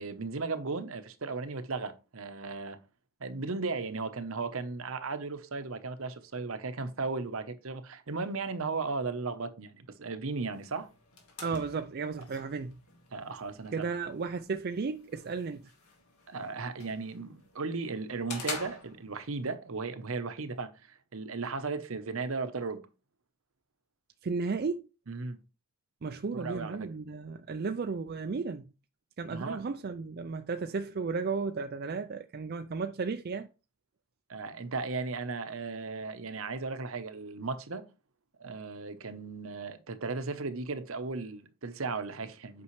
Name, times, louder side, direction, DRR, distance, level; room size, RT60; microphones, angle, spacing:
voice 1, 0.0-2.8 3.2-10.9 13.1-13.9 16.3-22.8 25.1-25.4 26.3-26.9 29.3-29.6 34.3-37.8 38.4-42.6, right 4 dB, 70° right, 0.9 m, -36 dB
sound 1, 10.5-19.5, left 4 dB, 90° left, 2.1 m, -47 dB
voice 2, 11.4-12.8 13.7-15.6 24.2-24.8 26.0-28.7 29.2-33.5, right 4 dB, 45° right, 0.4 m, -34 dB
8.5 x 5.4 x 3.1 m
head